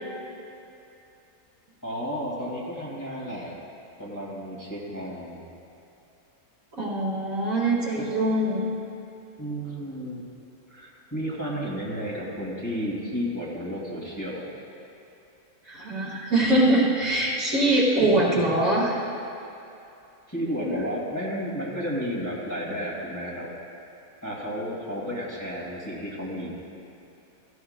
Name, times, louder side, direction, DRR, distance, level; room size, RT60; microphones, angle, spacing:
voice 1, 1.8-3.6 4.0-5.5 8.0-8.2 9.4-10.2 10.7-14.5 17.9-18.2 20.3-23.5 24.2-26.5, equal, 10° left, -5 dB, 2.1 m, -32 dB
voice 2, 6.8-8.7 15.7-18.9, right 1 dB, 60° right, -5 dB, 2.2 m, -23 dB
16.0 x 15.5 x 2.2 m, 2.8 s
omnidirectional pair, 1.6 m